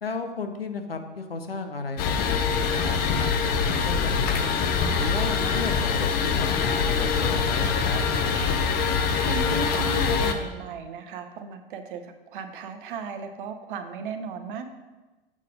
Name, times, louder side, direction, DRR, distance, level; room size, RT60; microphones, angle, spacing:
voice 1, 0.0-4.5 4.9-8.1, left 4 dB, 85° left, 6 dB, 0.8 m, -34 dB
sound 1, 2.0-10.3, left 5 dB, 30° left, 0.7 m, -24 dB
voice 2, 9.2-14.7, right 6 dB, 60° right, 7 dB, 0.9 m, -36 dB
7.4 x 4.1 x 5.1 m, 1.1 s
figure-of-eight pair, 85°, 29 cm